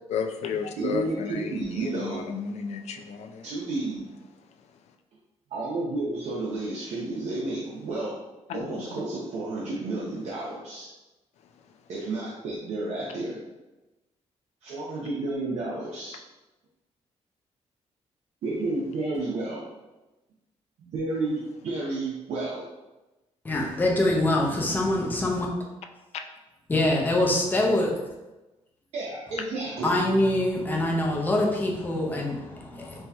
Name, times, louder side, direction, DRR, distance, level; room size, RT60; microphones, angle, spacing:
voice 1, 0.1-3.4 8.5-9.0, left 6 dB, 70° left, 5 dB, 0.4 m, -33 dB
voice 2, 0.8-2.3 3.4-4.0 5.5-8.2 8.5-10.9 11.9-13.4 14.6-16.2 18.4-19.6 20.9-22.7 28.9-29.9, right 2 dB, 75° right, -6 dB, 0.8 m, -31 dB
voice 3, 23.4-25.5 26.7-27.9 29.8-33.1, left 1 dB, 15° left, -1 dB, 0.6 m, -24 dB
4.4 x 2.8 x 3.4 m, 1.1 s
wide cardioid pair, 170°, 12 cm